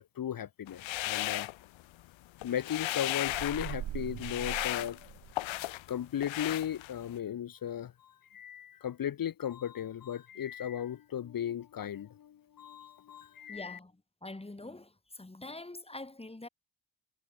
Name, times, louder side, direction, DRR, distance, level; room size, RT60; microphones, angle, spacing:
voice 1, 0.0-1.5 2.4-5.0 5.9-13.8, left 10 dB, 45° left, 1.3 m, -36 dB
sound 1, 0.7-2.1 2.4-3.8 4.2-5.9 6.2-7.2, left 16 dB, 75° left, 2.0 m, -35 dB
sound 2, 3.3-5.7, right 12 dB, 60° right, 2.1 m, -41 dB
voice 2, 13.5-16.5, left 2 dB, 10° left, 5.7 m, -45 dB
cardioid pair, 90°, 47 cm